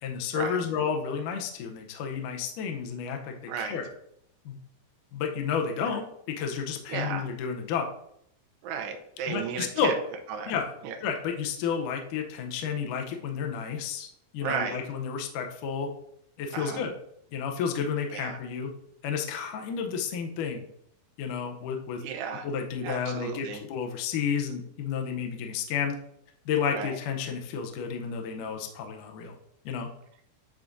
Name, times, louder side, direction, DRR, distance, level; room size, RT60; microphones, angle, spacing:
voice 1, 0.0-3.9 4.5-4.6 5.1-7.9 9.3-9.9 10.5-10.7 11.0-14.1 14.3-15.9 16.4-16.9 17.3-18.7 19.0-20.6 21.2-22.0 22.4-26.0 26.5-29.4 29.7-29.9, left 6 dB, 85° left, 3 dB, 1.8 m, -31 dB
voice 2, 3.5-3.8 5.8-6.0 6.9-7.3 8.6-9.9 10.3-10.5 10.8-11.0 14.4-14.8 16.5-16.8 18.1-18.4 22.0-22.5 22.8-23.6 26.7-26.9, right 6 dB, 80° right, 5 dB, 2.7 m, -34 dB
10.5 x 3.6 x 2.6 m, 0.71 s
omnidirectional pair, 4.8 m